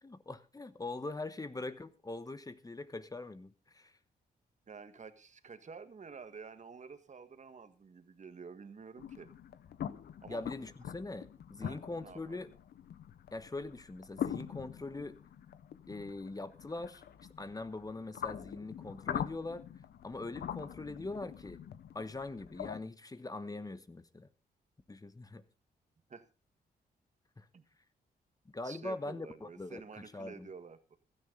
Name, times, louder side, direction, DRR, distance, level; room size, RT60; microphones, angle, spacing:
voice 1, 0.0-3.9 10.3-12.5 13.3-15.2 15.9-17.0 17.4-19.6 20.0-21.6 21.9-24.3 24.9-25.4 27.4-27.5 28.5-29.8 30.1-30.5, left 2 dB, 20° left, 1.2 m, -42 dB
voice 2, 4.7-9.3 10.2-10.4 11.6-12.4 26.1-26.3 27.5-27.6 28.6-31.0, right 5 dB, 45° right, 1.7 m, -50 dB
sound 1, 9.0-22.8, left 9 dB, 80° left, 0.9 m, -44 dB
16.0 x 13.0 x 3.9 m
cardioid pair, 75°, 17 cm